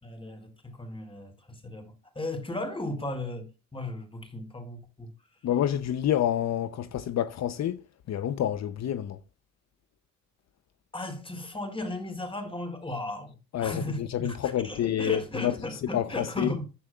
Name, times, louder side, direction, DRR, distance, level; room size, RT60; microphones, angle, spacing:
voice 1, 0.0-5.1 10.9-16.6, left 2 dB, 20° left, 4.3 m, -36 dB
voice 2, 5.4-9.2 13.5-16.5, left 10 dB, 60° left, 0.8 m, -28 dB
14.0 x 10.0 x 2.5 m
cardioid pair, 90°, 30 cm